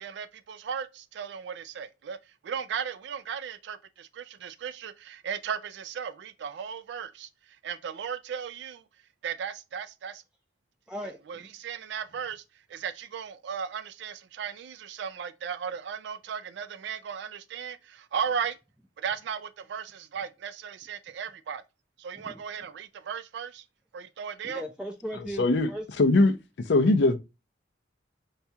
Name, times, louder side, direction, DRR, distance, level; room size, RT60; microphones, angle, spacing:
voice 1, 0.0-2.2 2.4-8.8 9.2-10.2 11.3-12.4 12.7-18.6 19.0-21.6 22.0-23.7 23.9-24.6, right 7 dB, 70° right, 0.3 m, -36 dB
voice 2, 10.9-11.4 22.2-22.3 24.4-25.8, equal, 5° right, 0.5 m, -37 dB
voice 3, 25.4-25.7 26.0-26.4 26.7-27.2, left 2 dB, 70° left, 0.5 m, -20 dB
5.6 x 2.3 x 2.6 m
head